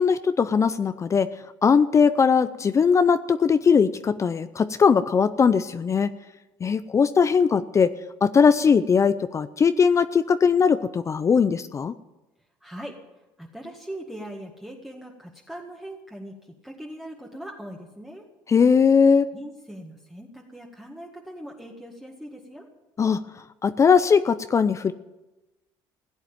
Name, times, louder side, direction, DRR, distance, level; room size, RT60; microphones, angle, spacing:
voice 1, 0.0-1.3 1.6-6.1 6.6-7.9 8.2-11.9 18.5-19.3 23.0-23.2 23.6-24.9, left 6 dB, 30° left, 13 dB, 0.6 m, -20 dB
voice 2, 12.6-13.0 13.4-18.3 19.3-22.7, right 1 dB, 5° right, -1 dB, 1.8 m, -40 dB
16.5 x 8.2 x 9.0 m, 1.1 s
supercardioid pair, 90°, 10 cm